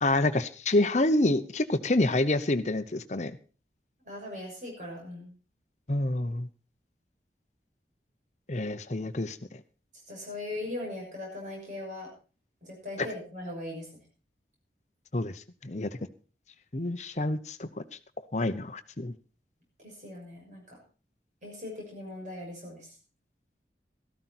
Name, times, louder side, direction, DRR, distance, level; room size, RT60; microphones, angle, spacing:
voice 1, 0.0-3.3 5.9-6.5 8.5-9.4 13.0-13.1 15.1-15.3 15.6-16.0 16.7-17.7 18.3-19.1, left 2 dB, 40° left, 11 dB, 0.9 m, -27 dB
voice 2, 4.0-5.3 10.1-12.1 12.6-13.9 19.8-20.8 21.4-22.9, left 1 dB, 45° right, 0 dB, 6.6 m, -39 dB
13.5 x 13.0 x 4.3 m, 0.36 s
head